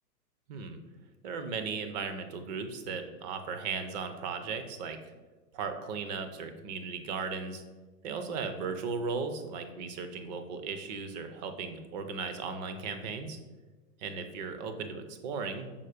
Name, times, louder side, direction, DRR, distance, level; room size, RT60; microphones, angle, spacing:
voice 1, 1.2-5.0 5.5-7.6 8.0-13.4 14.0-15.7, right 5 dB, 30° right, 7 dB, 0.5 m, -36 dB
5.6 x 4.3 x 4.9 m, 1.2 s
hypercardioid pair, 145°, 47 cm